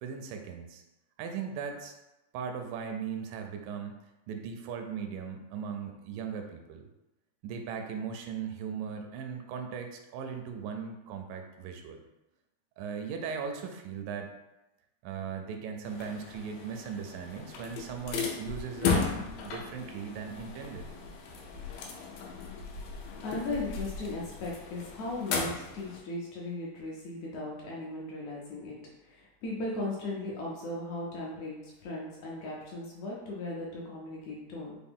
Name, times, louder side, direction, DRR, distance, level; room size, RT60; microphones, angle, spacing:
voice 1, 0.0-0.8 1.2-1.9 2.3-4.0 4.3-6.9 7.4-12.0 12.8-14.3 15.0-20.9, right 6 dB, 85° right, 4 dB, 2.2 m, -38 dB
sound 1, 15.9-26.0, left 5 dB, 90° left, 2.3 m, -36 dB
voice 2, 23.2-28.8 29.1-34.7, left 2 dB, 75° left, -4 dB, 1.9 m, -37 dB
5.7 x 2.2 x 3.5 m, 0.97 s
omnidirectional pair, 3.8 m